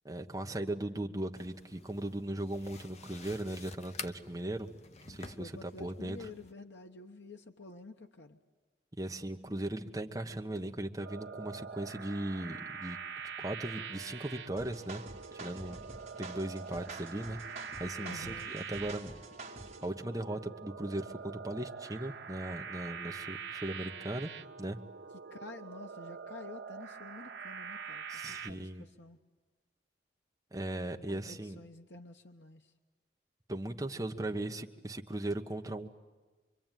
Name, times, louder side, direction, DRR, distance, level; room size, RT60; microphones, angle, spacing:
voice 1, 0.0-4.7 5.1-6.3 9.0-13.0 13.4-15.0 15.4-15.8 16.2-19.2 19.8-24.3 24.6-24.8 28.1-28.8 30.5-31.6 33.5-35.9, right 1 dB, 20° right, 3 dB, 1.2 m, -38 dB
sound 1, 1.4-6.5, left 5 dB, 35° left, 0.7 m, -50 dB
voice 2, 5.4-8.4 18.0-18.5 25.3-29.2 30.9-32.6 34.2-34.4, left 3 dB, 75° left, 4 dB, 1.1 m, -50 dB
sound 2, 11.0-28.5, right 6 dB, 75° right, 1.3 m, -44 dB
sound 3, 14.6-19.9, right 3 dB, 40° right, 2.0 m, -48 dB
24.5 x 24.5 x 9.2 m, 1.3 s
head